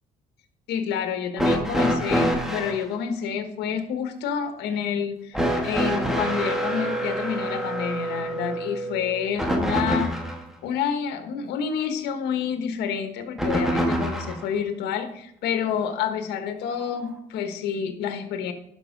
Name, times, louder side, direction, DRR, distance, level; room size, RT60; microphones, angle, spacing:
voice 1, 0.7-10.1 10.6-18.5, left 7 dB, 80° left, 8 dB, 1.4 m, -28 dB
sound 1, 1.4-2.8 5.3-10.4 13.4-14.5 15.7-15.8 16.8-16.9, equal, ahead, 1.7 m, -26 dB
11.5 x 5.4 x 5.2 m, 0.72 s
cardioid pair, 110°, 17 cm